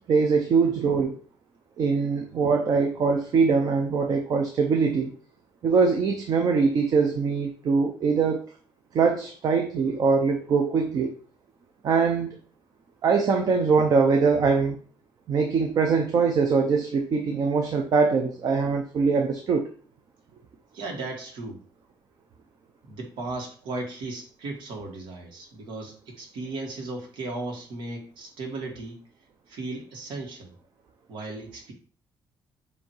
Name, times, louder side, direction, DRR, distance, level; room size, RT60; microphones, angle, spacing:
voice 1, 0.1-1.2 1.8-5.1 5.6-8.4 8.9-11.1 11.8-12.4 13.0-14.8 15.3-19.7, right 5 dB, 50° right, 3 dB, 0.7 m, -22 dB
voice 2, 20.7-21.6 22.9-29.0 29.5-30.5 31.1-31.7, right 2 dB, 80° right, 0 dB, 1.7 m, -36 dB
7.5 x 2.8 x 4.5 m, 0.43 s
cardioid pair, 155°, 8 cm